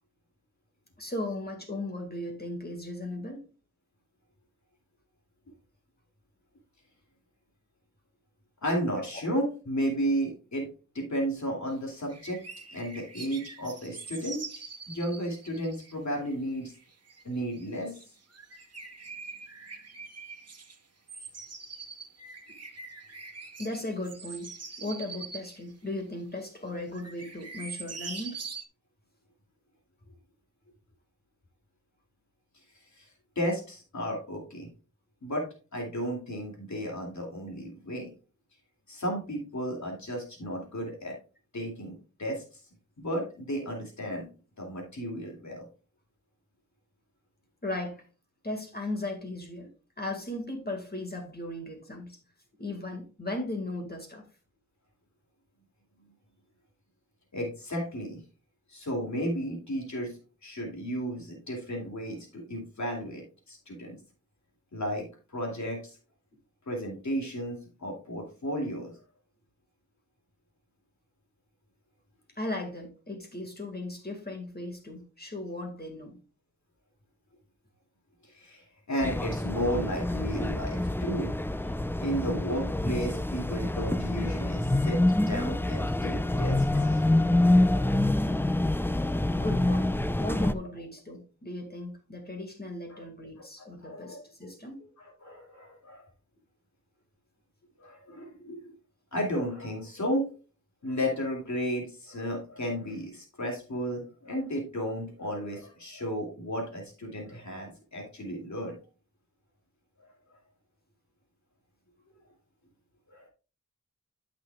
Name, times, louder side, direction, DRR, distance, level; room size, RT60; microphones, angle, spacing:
voice 1, 1.0-3.5 23.6-24.5 24.8-28.4 47.6-48.0 48.4-49.7 50.0-52.2 52.6-54.2 72.4-76.2 89.3-89.9 90.2-94.8, left 1 dB, 30° left, 1.9 m, -37 dB
voice 2, 8.6-10.7 10.9-12.4 12.7-16.7 17.2-18.0 32.9-33.1 33.4-34.7 35.2-38.1 38.9-41.2 41.5-42.6 43.0-44.3 44.6-45.7 57.3-58.2 58.7-64.0 64.7-65.1 65.3-66.0 66.7-68.9 78.2-81.3 82.0-85.0 85.3-88.1 89.3-89.5 92.9-93.0 93.6-94.2 95.0-96.0 97.8-98.7 99.1-100.3 100.8-108.8 113.1-113.2, equal, 65° left, 2.6 m, -33 dB
sound 1, 12.1-15.9 16.3-16.4 16.7-17.7 18.0-18.1 18.3-20.8 21.1-25.6 26.4-26.5 26.9-28.7, right 4 dB, 55° right, 1.3 m, -43 dB
sound 2, 79.0-90.5, left 1 dB, 5° left, 0.5 m, -26 dB
13.0 x 5.9 x 2.3 m
wide cardioid pair, 70°, 30 cm